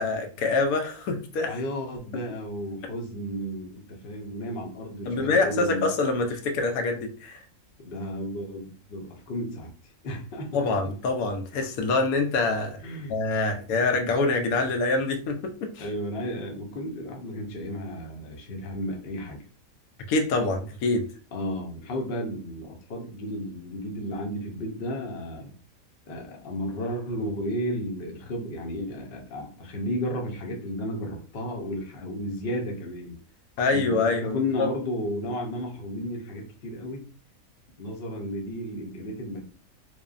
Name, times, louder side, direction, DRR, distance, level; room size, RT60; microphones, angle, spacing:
voice 1, 0.0-1.5 5.1-7.4 10.5-12.8 13.1-15.8 20.1-21.0 33.6-34.7, left 3 dB, 90° left, 5 dB, 1.1 m, -25 dB
voice 2, 1.5-5.9 7.8-9.7 10.0-10.5 12.8-13.2 15.8-19.4 21.3-25.5 26.1-33.1 33.7-37.1 37.8-39.4, equal, 50° left, 1 dB, 0.8 m, -33 dB
3.1 x 2.1 x 2.4 m, 0.38 s
omnidirectional pair, 1.5 m